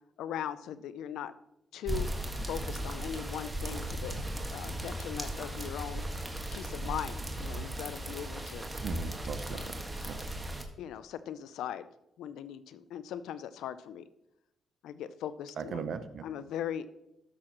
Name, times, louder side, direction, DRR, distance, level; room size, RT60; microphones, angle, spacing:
voice 1, 0.2-1.3 1.7-2.1 2.4-4.2 4.5-6.0 6.5-8.7 9.5-9.7 10.8-11.9 12.2-14.0 14.8-15.9 16.2-16.9, left 10 dB, 85° left, 15 dB, 0.4 m, -39 dB
sound 1, 1.8-10.6, right 1 dB, 20° right, 1.6 m, -37 dB
voice 2, 8.8-10.2 15.6-16.3, right 6 dB, 70° right, 12 dB, 0.7 m, -39 dB
13.5 x 6.3 x 3.0 m, 0.84 s
supercardioid pair, 60°, 0 cm